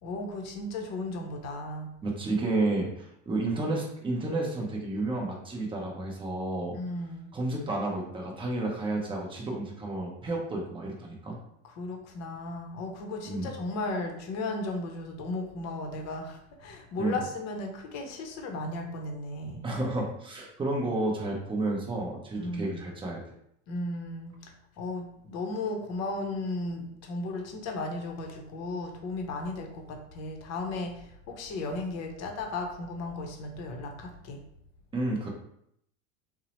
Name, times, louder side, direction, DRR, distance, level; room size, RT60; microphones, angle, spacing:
voice 1, 0.0-1.9 6.7-7.3 11.7-19.6 22.4-22.8 23.7-34.4, left 2 dB, 40° left, 2 dB, 0.7 m, -35 dB
voice 2, 2.0-6.8 7.3-11.4 13.3-13.5 17.0-17.2 19.6-23.2 34.9-35.3, right 2 dB, 15° right, -1 dB, 0.6 m, -31 dB
2.8 x 2.0 x 2.9 m, 0.73 s
hypercardioid pair, 100°, 40 cm